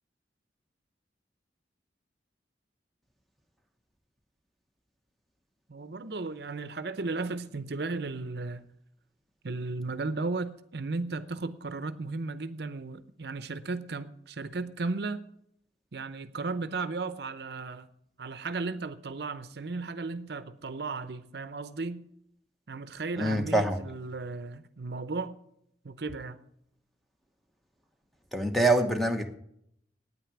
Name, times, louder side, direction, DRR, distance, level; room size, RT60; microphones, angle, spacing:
voice 1, 5.7-8.7 9.4-15.2 15.9-17.9 18.2-22.1 22.7-25.4 25.8-26.4, right 3 dB, 65° right, 12 dB, 0.7 m, -35 dB
voice 2, 23.2-23.8 28.3-29.3, right 1 dB, ahead, 5 dB, 1.1 m, -25 dB
9.4 x 9.3 x 8.1 m, 0.73 s
head